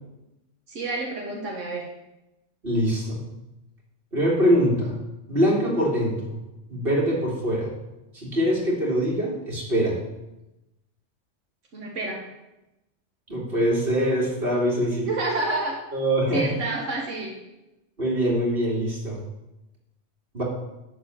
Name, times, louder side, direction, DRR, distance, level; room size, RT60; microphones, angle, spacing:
voice 1, 0.7-1.8 11.7-12.2 14.8-15.8 16.3-17.3, right 2 dB, 90° right, -1 dB, 1.8 m, -29 dB
voice 2, 2.6-3.2 4.1-5.0 5.3-6.4 6.7-7.7 8.1-10.0 13.3-15.0 15.9-16.5 18.0-19.2 20.3-20.4, equal, 50° right, -4 dB, 3.1 m, -23 dB
11.0 x 4.3 x 7.9 m, 0.95 s
omnidirectional pair, 1.2 m